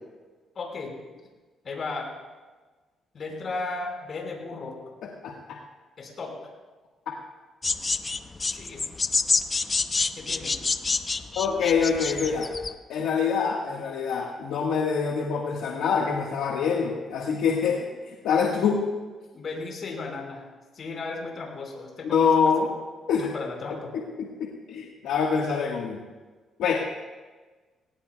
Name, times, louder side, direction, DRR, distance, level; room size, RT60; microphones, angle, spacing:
voice 1, 0.5-0.9 1.6-2.1 3.1-4.7 6.0-6.3 8.5-8.9 10.2-10.6 19.3-20.5 20.7-22.7 23.2-23.9, left 3 dB, 50° left, 0 dB, 5.0 m, -35 dB
sound 1, 7.6-12.7, left 4 dB, 30° left, 0.6 m, -27 dB
voice 2, 11.3-12.5 12.9-18.8 22.1-22.7 23.1-23.3 23.9-26.0 26.6-26.7, left 6 dB, 85° left, -1 dB, 1.5 m, -25 dB
20.0 x 18.5 x 2.3 m, 1.3 s
cardioid pair, 90°, 0 cm